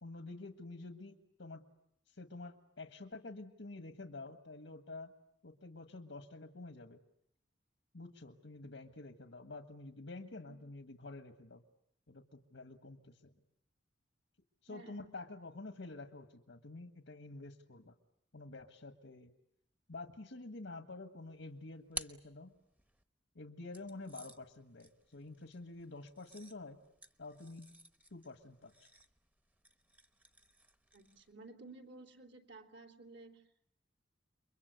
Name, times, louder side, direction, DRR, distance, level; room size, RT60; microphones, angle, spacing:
voice 1, 0.0-1.7 2.1-5.1 5.4-7.0 7.9-11.6 12.1-13.3 14.6-17.9 18.3-19.3 19.9-22.5 23.3-26.8 27.2-27.7 28.1-28.7, left 2 dB, 85° left, 7 dB, 1.6 m, -49 dB
voice 2, 14.7-15.1 30.9-33.4, right 3 dB, 65° right, 5 dB, 3.2 m, -54 dB
sound 1, 21.2-23.0 23.7-31.3, right 2 dB, 10° right, 1.0 m, -52 dB
29.0 x 23.0 x 8.2 m, 0.73 s
head